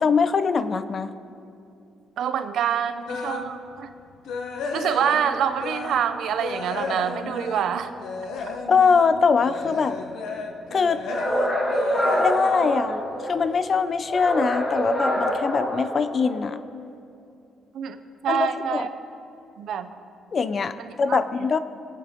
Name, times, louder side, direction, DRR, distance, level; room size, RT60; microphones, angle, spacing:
voice 1, 0.0-1.1 8.7-10.0 10.7-11.0 12.2-16.6 18.3-18.9 20.3-21.6, left 5 dB, 45° left, 12 dB, 0.6 m, -22 dB
voice 2, 2.2-3.9 4.7-7.9 17.7-18.0 18.2-18.9 19.6-19.9 20.8-21.2, right 8 dB, 75° right, 10 dB, 0.7 m, -26 dB
sound 1, 3.1-3.5 3.9-6.1 6.4-13.6 14.0-14.2 14.7-14.8 15.2-15.3, left 3 dB, 80° left, 1.1 m, -33 dB
sound 2, 11.1-13.5 14.1-16.5, equal, 30° left, 2.2 m, -25 dB
21.0 x 8.5 x 3.7 m, 2.5 s
cardioid pair, 90°, 0 cm